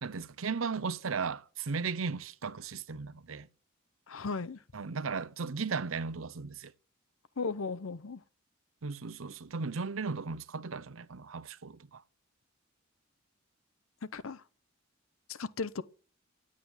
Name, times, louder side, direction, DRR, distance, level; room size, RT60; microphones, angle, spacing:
voice 1, 0.0-3.5 4.7-6.7 8.8-12.0, right 5 dB, 85° right, 0.7 m, -36 dB
voice 2, 4.1-4.6 7.4-8.2 14.1-14.4 15.3-15.8, left 4 dB, 90° left, 0.8 m, -36 dB
11.0 x 8.6 x 7.3 m
head